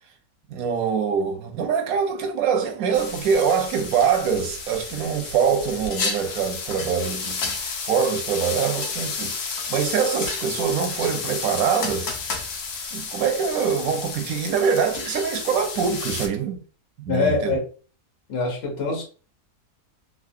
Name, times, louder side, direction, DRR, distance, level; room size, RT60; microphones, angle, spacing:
voice 1, 0.5-7.5 7.9-9.3 9.7-12.2 12.9-16.6 17.0-17.6, right 6 dB, 75° right, 1.0 m, -24 dB
sound 1, 2.9-16.3, left 4 dB, 85° left, 1.2 m, -31 dB
voice 2, 17.1-17.6 18.3-19.0, left 3 dB, 45° left, 1.2 m, -24 dB
3.1 x 2.7 x 2.6 m
omnidirectional pair, 1.6 m